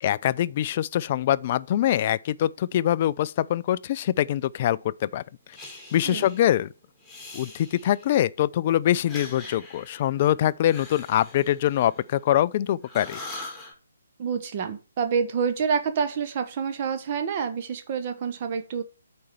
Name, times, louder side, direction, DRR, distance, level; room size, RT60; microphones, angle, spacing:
voice 1, 0.0-5.2 5.9-6.7 7.3-13.2, left 12 dB, 35° left, 0.3 m, -24 dB
Breathing, 5.5-6.6 7.0-8.2 8.9-12.5 12.8-13.7, left 2 dB, ahead, 2.1 m, -43 dB
voice 2, 14.2-18.8, right 6 dB, 35° right, 1.2 m, -27 dB
8.4 x 4.3 x 6.9 m
figure-of-eight pair, 135°, 0 cm